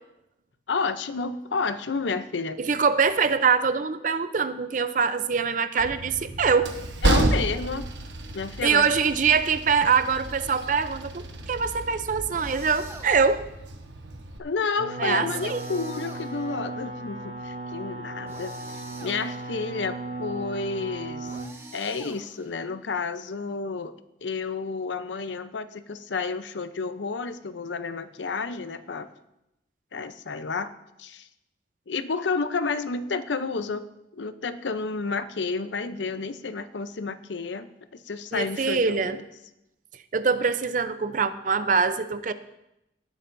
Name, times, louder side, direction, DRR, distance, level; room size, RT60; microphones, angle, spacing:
voice 1, 0.7-2.6 7.0-7.9 8.3-8.8 14.4-21.3 21.7-23.9 24.2-29.1 29.9-30.7 31.0-31.3 31.9-33.8 34.1-39.2, left 4 dB, 90° left, 12 dB, 0.6 m, -30 dB
voice 2, 2.6-6.7 8.6-13.4 15.0-15.6 38.3-39.2 40.1-42.3, right 5 dB, 45° right, 12 dB, 0.5 m, -24 dB
Train, 5.8-14.4, right 1 dB, 90° right, 1.1 m, -31 dB
sound 1, 12.3-13.4 15.3-16.7 18.3-19.6 21.2-22.7, right 2 dB, 15° right, 0.9 m, -46 dB
sound 2, 14.8-21.4, right 2 dB, 75° right, 2.1 m, -36 dB
18.5 x 10.0 x 2.6 m, 0.86 s
head